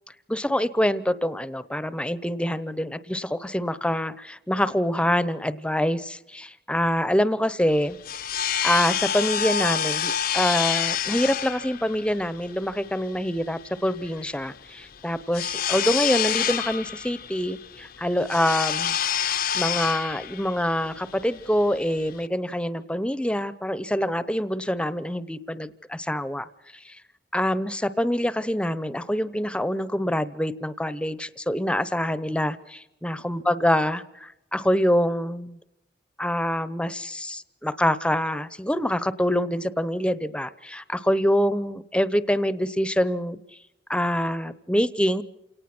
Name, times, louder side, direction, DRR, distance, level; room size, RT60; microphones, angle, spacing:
voice 1, 0.3-8.0 8.6-19.0 19.5-26.5 26.8-27.0 27.3-35.6 36.2-43.4 43.9-45.2, equal, 5° left, 16 dB, 0.9 m, -25 dB
sound 1, 7.7-22.3, left 9 dB, 55° left, 0.8 m, -28 dB
28.5 x 18.5 x 6.1 m, 0.87 s
head